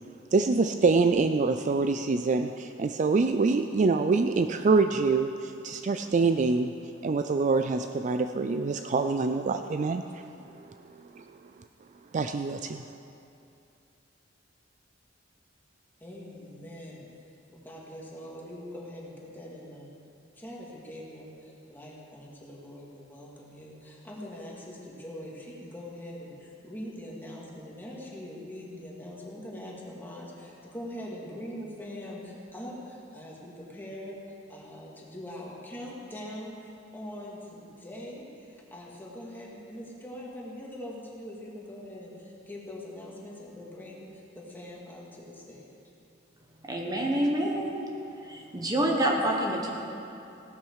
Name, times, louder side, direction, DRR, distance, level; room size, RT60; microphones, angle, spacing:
voice 1, 0.3-6.7 7.0-10.2 10.6-10.7 11.1-11.2 12.1-12.8, right 4 dB, 40° right, 8 dB, 0.4 m, -25 dB
voice 2, 16.0-17.1 17.5-19.9 20.4-34.2 34.5-45.8, left 1 dB, 10° left, -4 dB, 2.4 m, -42 dB
voice 3, 46.7-47.8 48.2-49.7, right 1 dB, 20° right, -1 dB, 1.3 m, -27 dB
17.0 x 12.0 x 4.8 m, 2.8 s
head